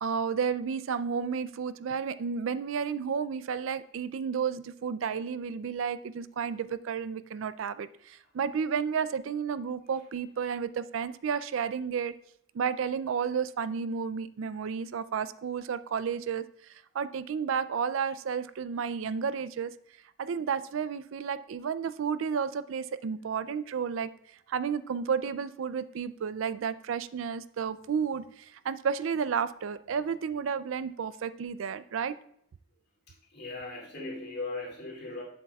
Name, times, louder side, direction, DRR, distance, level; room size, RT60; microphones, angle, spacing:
voice 1, 0.0-12.1 12.5-16.4 16.9-19.7 20.2-24.1 24.5-32.1, right 6 dB, 70° right, 14 dB, 0.4 m, -32 dB
voice 2, 33.1-35.2, left 2 dB, 55° left, -2 dB, 2.6 m, -38 dB
11.0 x 7.6 x 2.3 m, 0.69 s
head